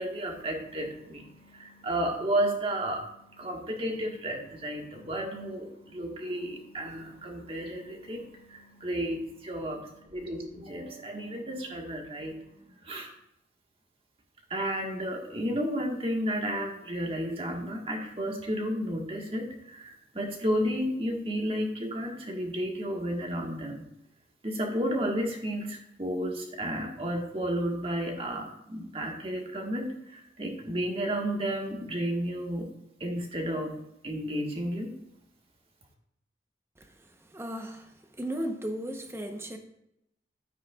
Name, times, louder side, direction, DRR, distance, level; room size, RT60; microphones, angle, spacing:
voice 1, 0.0-13.1 14.5-23.8 24.4-32.7 33.0-33.7 34.0-34.9, equal, 30° right, 1 dB, 1.6 m, -32 dB
voice 2, 37.3-37.9 38.2-39.6, right 1 dB, 15° right, 5 dB, 0.9 m, -35 dB
12.0 x 9.0 x 2.4 m, 0.81 s
head